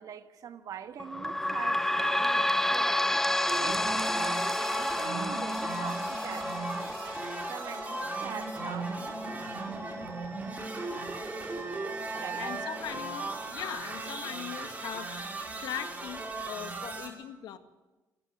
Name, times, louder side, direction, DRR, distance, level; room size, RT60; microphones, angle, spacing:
voice 1, 0.0-3.2 3.6-4.5 4.7-7.0 7.5-10.0 12.2-12.5, right 8 dB, 60° right, 7 dB, 1.8 m, -44 dB
sound 1, 1.0-14.2 14.7-14.8 15.1-15.2 16.0-16.1, left 1 dB, 5° left, 0.8 m, -32 dB
sound 2, 3.5-17.1, right 3 dB, 25° right, 5.9 m, -38 dB
Wind instrument woodwind instrument, 9.2-12.8, right 6 dB, 40° right, 1.8 m, -44 dB
voice 2, 12.0-17.6, left 11 dB, 80° left, 7 dB, 2.0 m, -41 dB
28.0 x 14.0 x 9.3 m, 1.1 s
cardioid pair, 110°, 7 cm